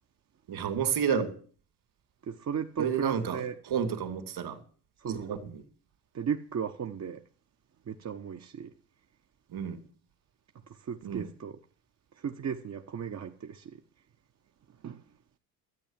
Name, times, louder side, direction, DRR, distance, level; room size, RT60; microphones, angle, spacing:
voice 1, 0.5-1.3 2.8-3.4 3.7-4.6 5.0-5.4 9.5-9.8 11.0-11.3, right 7 dB, 60° right, 2.9 m, -30 dB
voice 2, 2.2-3.6 5.0-5.3 6.1-7.2 7.9-8.7 10.7-11.6 12.2-13.8 14.8-15.0, right 7 dB, 35° right, 1.1 m, -36 dB
13.5 x 8.5 x 7.5 m
supercardioid pair, 75°, 44 cm